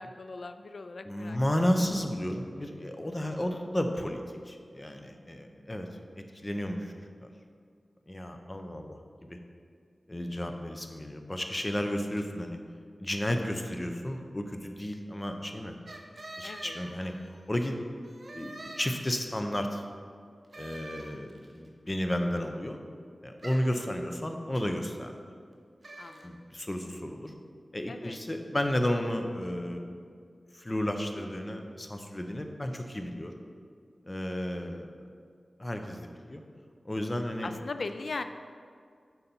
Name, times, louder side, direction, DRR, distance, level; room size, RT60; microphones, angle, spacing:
voice 1, 0.0-1.4 16.4-16.8 23.8-23.9 26.0-26.3 27.9-28.2 37.4-38.2, left 3 dB, 70° left, 9 dB, 0.3 m, -39 dB
voice 2, 1.0-5.9 6.2-6.9 7.2-7.3 8.1-9.4 10.1-12.6 13.0-15.8 16.4-17.1 17.5-17.8 18.3-19.8 20.6-22.8 23.2-25.2 26.2-27.3 27.7-30.0 30.5-33.4 34.1-35.1 35.6-36.4 36.8-37.5, left 1 dB, 25° left, 5 dB, 0.6 m, -33 dB
sound 1, 15.9-17.5 18.0-19.5 20.5-21.6 23.4-23.8 25.8-26.3, right 1 dB, 60° right, 0.7 m, -45 dB
6.7 x 4.0 x 5.5 m, 2.2 s
wide cardioid pair, 60°, 0 cm